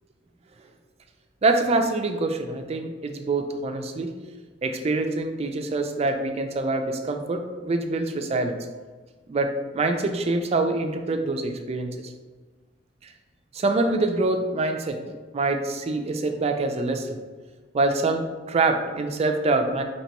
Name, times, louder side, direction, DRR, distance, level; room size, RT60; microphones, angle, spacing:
voice 1, 1.4-4.1 4.6-8.6 9.3-12.1 13.0-13.1 13.5-15.0 15.3-17.2 17.7-19.8, right 2 dB, 35° right, 5 dB, 0.3 m, -25 dB
4.3 x 2.9 x 2.9 m, 1.4 s
head